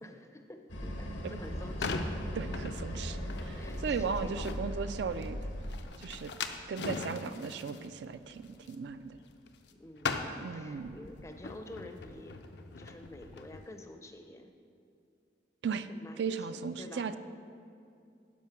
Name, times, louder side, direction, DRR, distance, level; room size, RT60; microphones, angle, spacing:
voice 1, 0.0-2.1 3.5-4.6 9.7-14.5 15.9-17.1, left 1 dB, 15° left, 6 dB, 0.5 m, -49 dB
sound 1, 0.7-5.8, equal, 80° left, 1.3 m, -38 dB
sound 2, 1.3-9.7 10.0-13.6, left 4 dB, 65° left, 0.6 m, -41 dB
voice 2, 2.4-5.4 6.0-6.3 6.7-8.4 8.7-9.2 10.4-11.0 15.6-15.9 16.2-17.2, right 5 dB, 65° right, 11 dB, 0.4 m, -36 dB
10.5 x 5.3 x 5.8 m, 2.5 s
head